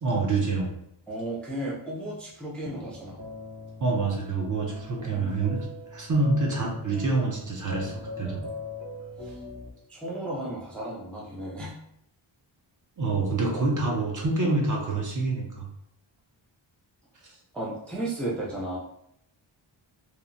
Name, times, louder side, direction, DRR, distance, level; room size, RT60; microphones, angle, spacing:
voice 1, 0.0-0.7 3.8-5.7 5.9-8.5 13.0-15.7, right 3 dB, 40° right, -1 dB, 0.6 m, -26 dB
voice 2, 1.1-3.2 5.0-5.5 9.2-9.3 9.9-11.8 17.5-18.8, right 1 dB, ahead, -5 dB, 0.4 m, -34 dB
sound 1, 2.8-9.7, left 2 dB, 75° right, 1.3 m, -41 dB
2.9 x 2.1 x 2.5 m, 0.76 s
wide cardioid pair, 135°, 47 cm